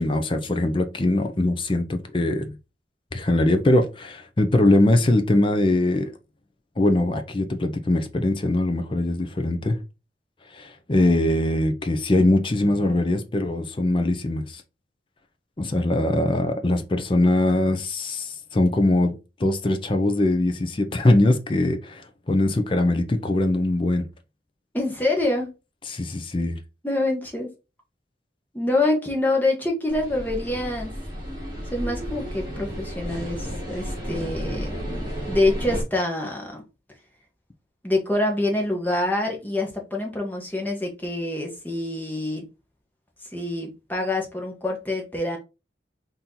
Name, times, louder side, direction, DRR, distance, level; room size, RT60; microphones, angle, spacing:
voice 1, 0.0-2.6 3.1-6.1 6.8-9.8 10.5-14.6 15.6-19.1 19.4-24.1 25.9-26.6, left 1 dB, 30° left, 0.5 m, -22 dB
voice 2, 24.7-25.5 26.8-27.5 28.5-30.9 31.7-36.6 37.8-42.4 43.3-45.4, left 2 dB, 10° left, 1.1 m, -26 dB
sound 1, 29.9-35.8, equal, 25° right, 1.5 m, -32 dB
4.3 x 2.7 x 3.7 m
head